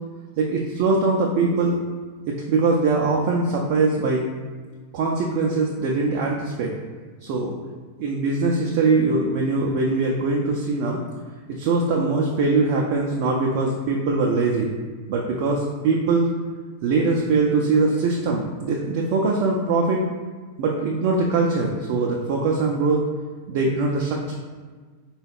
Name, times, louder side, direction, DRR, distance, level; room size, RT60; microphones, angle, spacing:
voice 1, 0.4-1.8 2.3-4.2 4.9-6.7 7.2-7.5 8.0-11.0 11.5-14.7 15.1-16.3 16.8-20.0 20.6-23.1 23.5-24.3, right 3 dB, 45° right, -1 dB, 0.4 m, -22 dB
3.7 x 2.3 x 3.4 m, 1.5 s
figure-of-eight pair, 90°, 0 cm